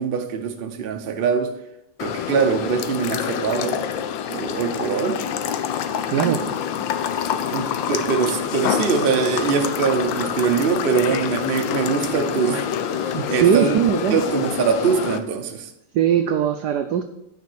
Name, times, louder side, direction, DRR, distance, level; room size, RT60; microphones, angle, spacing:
voice 1, 0.0-1.5 2.0-3.8 4.3-5.2 6.2-6.5 7.5-12.7 12.9-13.8 14.1-15.7, right 6 dB, 60° right, 0.5 m, -23 dB
sound 1, 2.0-15.2, left 9 dB, 70° left, 1.3 m, -26 dB
voice 2, 6.1-6.4 13.1-14.2 15.9-17.0, right 9 dB, 80° right, 0.9 m, -20 dB
9.3 x 5.3 x 6.3 m
omnidirectional pair, 2.4 m